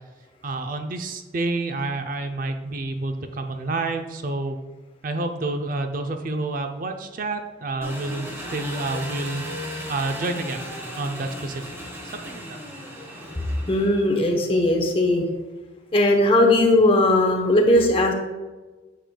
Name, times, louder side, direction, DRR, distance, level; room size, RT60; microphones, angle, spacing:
voice 1, 0.4-4.6 5.0-9.4 9.9-10.7 11.0-11.6 12.1-12.6, right 2 dB, 45° right, 6 dB, 0.5 m, -29 dB
Engine, 7.8-14.3, equal, 15° right, 1.1 m, -36 dB
voice 2, 13.7-15.2 15.9-18.1, left 1 dB, 30° left, 2 dB, 0.9 m, -18 dB
9.1 x 6.6 x 2.3 m, 1.3 s
head